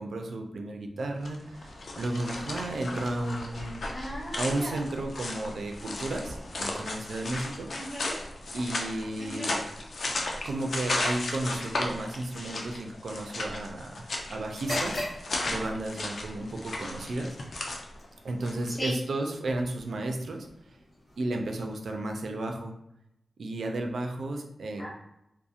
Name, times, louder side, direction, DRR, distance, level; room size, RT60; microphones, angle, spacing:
voice 1, 0.0-3.8 4.4-7.7 8.5-9.6 10.4-15.0 15.4-17.4 18.2-20.5 21.2-22.7 23.4-24.8, right 2 dB, 75° right, 4 dB, 0.3 m, -33 dB
sound 1, 1.1-18.8, left 2 dB, 60° left, 0.4 m, -35 dB
voice 2, 3.9-4.8 7.7-8.1 9.2-9.5 18.7-18.9 24.8-24.9, equal, 25° left, -4 dB, 0.7 m, -36 dB
sound 2, 14.5-22.3, left 1 dB, 85° left, 1.0 m, -43 dB
2.6 x 2.0 x 2.4 m, 0.83 s
wide cardioid pair, 145°, 0 cm